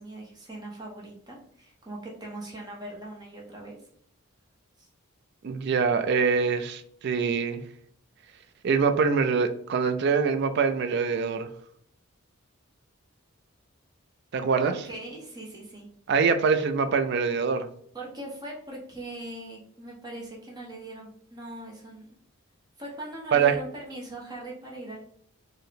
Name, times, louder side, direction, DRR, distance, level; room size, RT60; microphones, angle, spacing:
voice 1, 0.0-3.8 4.8-4.9 14.6-15.9 17.9-22.1 22.8-25.1, right 1 dB, 20° right, -3 dB, 0.7 m, -40 dB
voice 2, 5.4-7.6 8.6-11.5 14.3-14.7 16.1-17.7 23.3-23.6, right 5 dB, 50° right, 8 dB, 0.3 m, -24 dB
4.5 x 2.1 x 3.2 m, 0.64 s
head